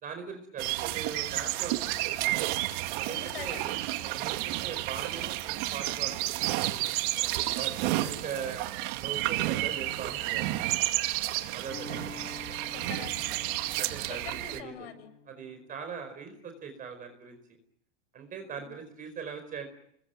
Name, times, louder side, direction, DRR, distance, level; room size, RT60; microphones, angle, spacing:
voice 1, 0.0-1.8 2.1-2.4 3.0-3.6 4.0-6.6 7.2-10.6 11.5-11.9 12.9-13.0 13.7-14.9 15.3-17.4 18.1-19.7, right 6 dB, 25° right, 7 dB, 4.7 m, -40 dB
sound 1, 0.6-14.6, right 17 dB, 50° right, 2.2 m, -31 dB
voice 2, 3.1-3.9 7.1-7.5 11.9-13.6 14.1-15.1 18.4-18.7, left 9 dB, 65° left, 11 dB, 7.6 m, -46 dB
sound 2, 11.7-16.9, left 3 dB, 25° left, 6.5 m, -49 dB
29.0 x 22.0 x 9.2 m, 0.71 s
supercardioid pair, 145°, 34 cm